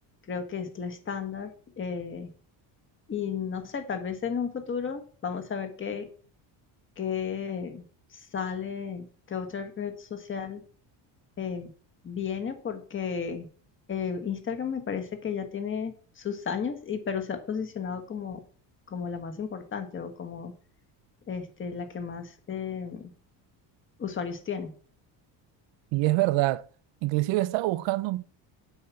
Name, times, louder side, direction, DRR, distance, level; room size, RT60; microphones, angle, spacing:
voice 1, 0.3-2.3 3.1-6.1 7.0-7.8 8.1-10.6 11.4-11.7 12.0-13.5 13.9-18.4 18.9-20.5 21.3-23.1 24.0-24.7, left 6 dB, 25° left, 1.5 m, -33 dB
voice 2, 25.9-26.7 27.0-28.2, right 18 dB, 75° right, 0.7 m, -25 dB
8.0 x 5.9 x 7.0 m
cardioid pair, 160°, 45 cm